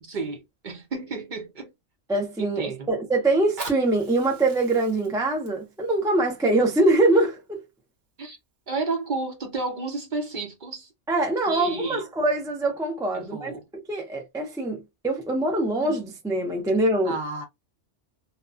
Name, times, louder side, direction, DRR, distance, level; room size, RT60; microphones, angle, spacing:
voice 1, 0.0-1.7 2.4-2.8 8.2-8.4 8.7-10.9 11.5-12.0 13.1-13.6 17.1-17.4, right 3 dB, 50° right, 0.7 m, -31 dB
voice 2, 2.1-7.6 11.1-17.2, right 2 dB, 5° right, 0.3 m, -24 dB
Fire, 3.3-8.3 8.9-9.0, right 3 dB, 75° right, 1.2 m, -43 dB
2.8 x 2.2 x 2.4 m
omnidirectional pair, 1.2 m